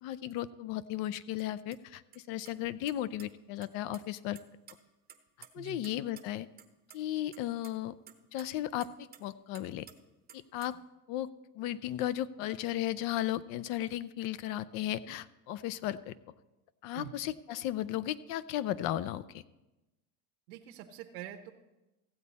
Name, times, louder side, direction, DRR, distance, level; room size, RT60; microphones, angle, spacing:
voice 1, 0.0-4.4 5.5-6.5 6.9-7.9 8.3-9.9 10.3-10.8 11.1-11.3 11.6-16.1 16.8-19.4, left 13 dB, 50° left, 18 dB, 0.5 m, -35 dB
sound 1, 1.4-1.5 1.7-1.8 2.1-2.2 2.5-3.3 3.6-4.0 4.4-5.9 6.2-6.3 6.6-7.0 7.3-9.3 9.5-10.0 10.3-10.8, right 9 dB, 20° right, 0.8 m, -53 dB
voice 2, 20.5-21.5, right 12 dB, 70° right, 3 dB, 0.9 m, -45 dB
15.0 x 8.4 x 4.1 m, 1.0 s
supercardioid pair, 125°, 45 cm